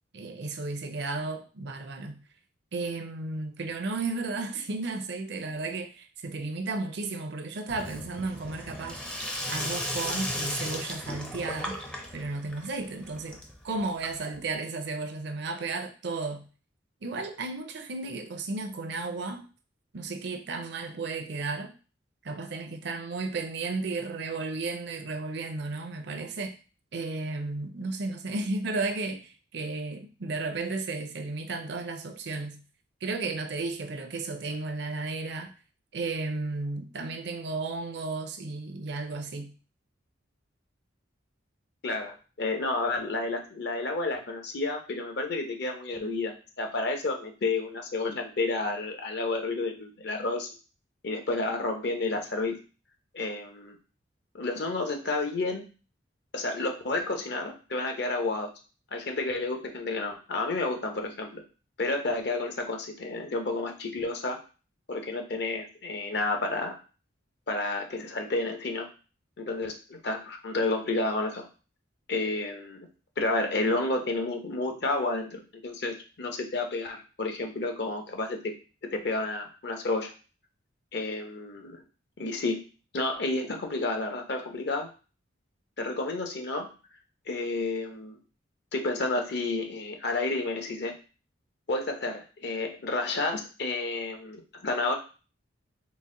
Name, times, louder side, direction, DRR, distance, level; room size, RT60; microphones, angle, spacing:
voice 1, 0.1-2.2 2.7-9.0 9.5-11.8 12.1-13.4 13.6-16.4 17.0-19.5 19.9-21.8 22.2-26.6 26.9-32.6 33.0-35.5 35.9-39.5, right 3 dB, 60° right, 0.5 m, -34 dB
Sink (filling or washing), 7.7-14.5, left 1 dB, 5° left, 0.4 m, -36 dB
voice 2, 41.8-50.5 51.0-52.6 53.1-53.8 54.3-55.7 56.3-58.5 58.9-61.4 61.8-64.4 64.9-66.8 67.5-68.9 69.4-71.5 72.1-72.9 73.2-78.5 78.9-80.1 80.9-81.8 82.2-82.6 82.9-84.9 85.8-86.7 87.3-88.2 88.7-90.9 91.7-94.9, left 2 dB, 60° left, 0.7 m, -30 dB
4.0 x 2.1 x 3.7 m
head